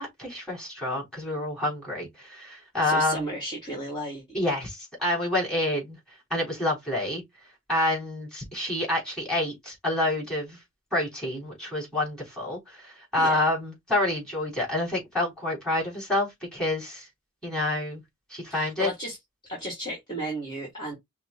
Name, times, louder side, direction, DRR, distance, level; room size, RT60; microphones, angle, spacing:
voice 1, 0.0-3.3 4.3-6.0 6.3-7.2 7.7-10.6 10.9-17.1 17.4-18.0 18.3-18.9, left 1 dB, 5° left, 3.4 m, -28 dB
voice 2, 2.8-4.2 13.2-13.4 18.5-19.2 19.4-20.9, right 1 dB, 20° left, 2.1 m, -34 dB
5.6 x 2.2 x 3.8 m
head